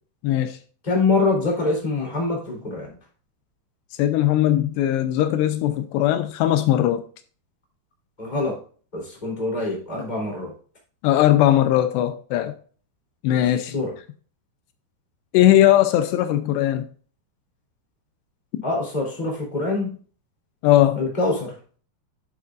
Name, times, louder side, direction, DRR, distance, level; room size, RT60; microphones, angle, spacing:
voice 1, 0.2-0.6 4.0-7.0 11.0-12.6 13.2-13.7 15.3-16.9 20.6-21.0, left 13 dB, 85° left, 2.8 m, -19 dB
voice 2, 0.8-3.0 8.2-8.6 8.9-10.5 13.3-14.0 18.6-20.0 20.9-21.6, left 3 dB, 10° left, 2.9 m, -25 dB
11.5 x 7.0 x 2.5 m
omnidirectional pair, 4.9 m